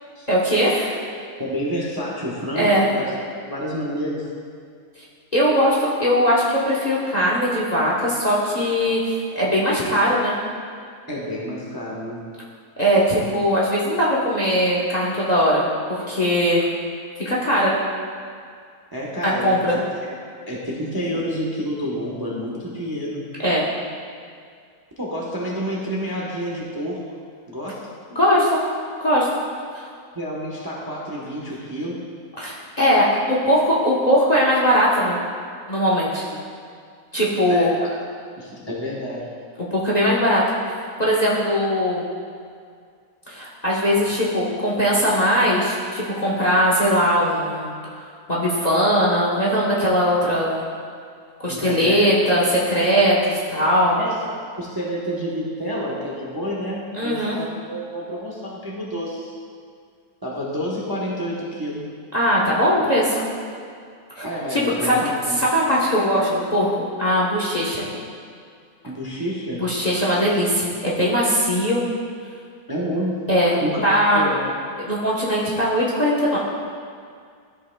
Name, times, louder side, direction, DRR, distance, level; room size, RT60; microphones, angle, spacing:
voice 1, 0.3-1.0 2.5-2.9 5.3-10.4 12.8-15.6 15.9-16.6 17.2-17.7 19.2-19.8 23.4-23.7 28.1-28.6 29.0-29.3 29.7-29.9 32.4-35.2 35.7-36.2 37.1-37.7 39.7-40.4 41.0-42.1 43.3-47.7 48.3-50.6 51.4-54.0 56.9-57.4 62.1-63.2 64.2-64.3 64.5-65.0 65.4-67.9 69.6-71.8 73.3-74.2 74.8-76.4, equal, 30° left, -6 dB, 1.0 m, -20 dB
voice 2, 1.4-3.1 3.4-4.3 11.1-12.2 18.9-19.8 20.5-23.2 25.0-27.1 27.5-27.9 30.1-32.0 36.1-36.2 37.5-37.9 38.4-39.3 51.5-52.1 53.9-59.3 60.2-61.9 64.2-65.4 68.8-69.7 72.7-73.2 73.6-73.9 74.1-74.4, equal, 20° right, -4 dB, 0.8 m, -29 dB
13.5 x 5.6 x 2.2 m, 2.2 s
omnidirectional pair, 1.6 m